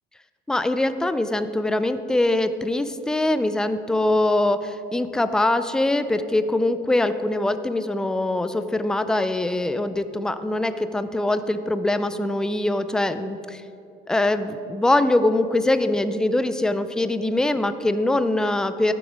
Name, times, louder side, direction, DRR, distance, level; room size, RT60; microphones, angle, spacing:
voice 1, 0.5-13.6 14.1-18.9, left 2 dB, 5° left, 11 dB, 0.3 m, -23 dB
13.5 x 7.2 x 5.0 m, 2.8 s
cardioid pair, 155°, 19 cm